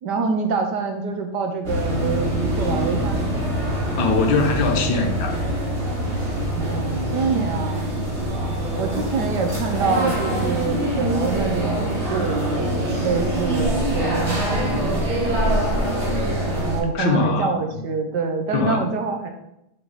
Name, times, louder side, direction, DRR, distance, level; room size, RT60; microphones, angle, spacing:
voice 1, 0.0-3.2 6.5-7.9 8.8-14.8 16.6-19.3, right 4 dB, 65° right, 4 dB, 1.3 m, -26 dB
sound 1, 1.6-16.8, right 1 dB, 30° right, 2.1 m, -24 dB
voice 2, 4.0-5.4 16.9-17.8 18.5-18.9, left 4 dB, 70° left, 3 dB, 1.6 m, -22 dB
8.9 x 4.1 x 4.0 m, 0.82 s
omnidirectional pair, 2.2 m